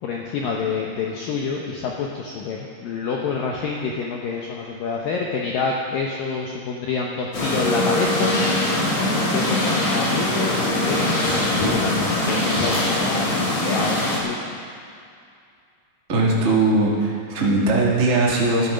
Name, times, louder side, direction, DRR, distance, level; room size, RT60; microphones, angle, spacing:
voice 1, 0.0-8.8 9.1-14.5, left 5 dB, 80° left, -1 dB, 2.0 m, -28 dB
sound 1, 7.3-14.2, left 1 dB, 40° left, 2.6 m, -22 dB
sound 2, 10.6-14.0, left 1 dB, 55° left, 5.6 m, -30 dB
voice 2, 16.1-18.7, right 2 dB, 80° right, -4 dB, 0.6 m, -19 dB
15.0 x 11.0 x 5.1 m, 2.3 s
omnidirectional pair, 5.3 m